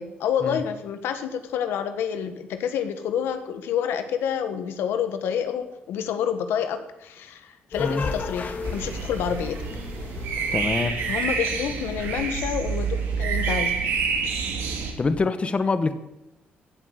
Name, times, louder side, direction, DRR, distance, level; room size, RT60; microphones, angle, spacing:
voice 1, 0.0-9.6 11.1-13.7, left 8 dB, 85° left, 9 dB, 1.4 m, -28 dB
sound 1, 7.7-12.4, left 4 dB, 50° left, 1.9 m, -35 dB
sound 2, 8.6-14.9, right 5 dB, 90° right, 3.1 m, -28 dB
voice 2, 10.5-11.0 15.0-15.9, left 4 dB, 30° left, 11 dB, 1.1 m, -25 dB
15.5 x 7.7 x 8.0 m, 0.89 s
cardioid pair, 90°, 4 cm